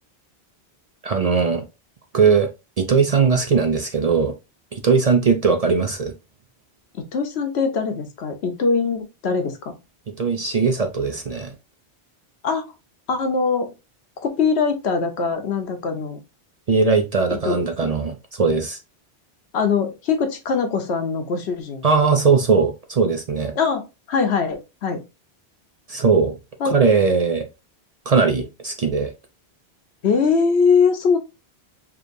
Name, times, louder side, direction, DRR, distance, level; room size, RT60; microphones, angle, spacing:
voice 1, 1.0-1.6 2.1-2.5 2.8-4.3 4.7-6.1 10.2-11.5 16.7-18.8 21.8-23.5 25.9-26.3 26.6-27.5 28.1-29.1, right 5 dB, 45° right, 0.5 m, -19 dB
voice 2, 6.9-9.7 12.4-12.7 13.1-13.7 14.2-16.2 17.4-17.6 19.5-21.9 23.6-25.0 26.6-26.7 30.0-31.2, left 5 dB, 85° left, 1.1 m, -22 dB
4.8 x 3.1 x 2.5 m
omnidirectional pair, 1.1 m